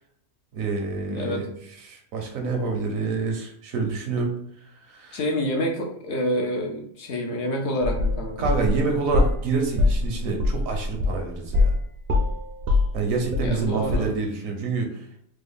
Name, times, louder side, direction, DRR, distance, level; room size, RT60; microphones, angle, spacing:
voice 1, 0.5-1.5 1.8-4.3 4.9-5.2 8.4-11.7 12.9-15.3, right 4 dB, 75° right, 2 dB, 1.1 m, -27 dB
voice 2, 1.1-1.5 5.1-8.5 13.4-14.1, equal, 65° left, 1 dB, 0.8 m, -28 dB
sound 1, 7.8-9.4 9.8-11.8 12.1-13.6 13.9-14.0, left 3 dB, 60° right, 0.7 m, -22 dB
3.4 x 2.1 x 3.5 m, 0.68 s
omnidirectional pair, 1.4 m